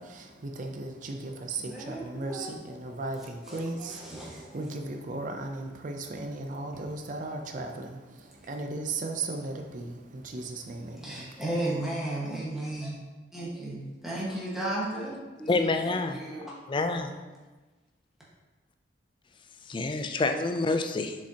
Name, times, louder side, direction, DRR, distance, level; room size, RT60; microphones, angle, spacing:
voice 1, 0.0-11.4, right 2 dB, 45° right, 4 dB, 0.5 m, -36 dB
voice 2, 1.6-2.6 3.4-4.5 6.1-6.2 11.0-12.9 13.3-16.5 16.9-17.2, right 1 dB, ahead, -7 dB, 1.5 m, -35 dB
voice 3, 15.5-16.2 16.7-17.2 19.7-21.2, left 3 dB, 25° left, 7 dB, 0.4 m, -27 dB
6.8 x 5.2 x 2.9 m, 1.2 s
head